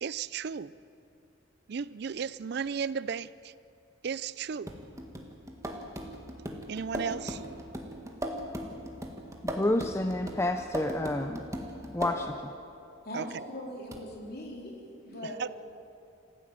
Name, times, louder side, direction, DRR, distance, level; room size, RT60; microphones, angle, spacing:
voice 1, 0.0-0.7 1.7-3.5 4.0-4.7 6.7-7.4 13.1-13.4 15.4-15.6, right 6 dB, 55° right, 17 dB, 0.4 m, -34 dB
sound 1, 4.7-12.5 13.9-14.0, equal, 15° right, 1.6 m, -38 dB
voice 2, 9.5-11.4 11.9-12.3, left 1 dB, 15° left, 6 dB, 0.6 m, -29 dB
voice 3, 13.0-14.7 15.0-15.4, left 1 dB, 50° left, -1 dB, 3.9 m, -40 dB
27.5 x 15.0 x 7.6 m, 2.7 s
head